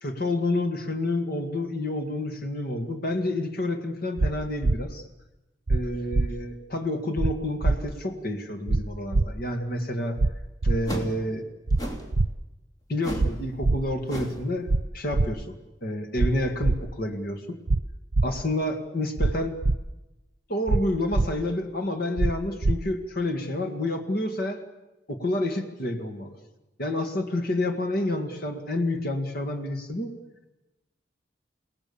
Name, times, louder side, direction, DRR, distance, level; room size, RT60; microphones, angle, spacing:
voice 1, 0.0-5.0 5.7-10.2 10.6-11.4 12.9-15.5 15.8-17.6 18.2-19.6 20.5-24.6 25.1-26.4 26.8-30.1, left 1 dB, 55° left, 6 dB, 2.0 m, -29 dB
sound 1, 4.2-4.3 4.6-4.8 5.7-5.8 6.1-6.3 7.2-7.3 7.6-7.8 8.7-8.8 9.1-9.3 10.2-10.3 10.6-10.8 11.7-11.8 12.1-12.3 13.2-13.3 13.6-13.8 14.7-14.8 15.1-15.3 16.2-16.3 16.6-16.8 17.7-17.8 18.1-18.3 19.2-19.3 19.6-19.8 20.7-20.8 21.1-21.3 22.2-22.3 22.6-22.8, right 2 dB, 80° right, 0.7 m, -22 dB
sound 2, 10.8-11.2 11.8-12.1 13.0-13.4 13.6-13.8 14.1-14.4, equal, 20° left, 3.1 m, -33 dB
30.0 x 18.0 x 7.1 m, 1.0 s
head